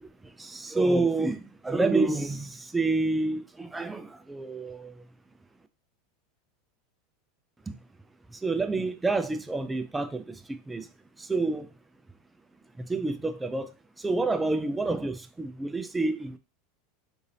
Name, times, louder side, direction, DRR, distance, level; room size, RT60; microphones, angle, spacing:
voice 1, 0.4-4.9 8.4-10.8 11.3-11.7 12.9-13.7 14.0-16.4, right 3 dB, 10° right, 0.4 m, -28 dB
3.8 x 2.6 x 3.1 m
supercardioid pair, 115°, 0 cm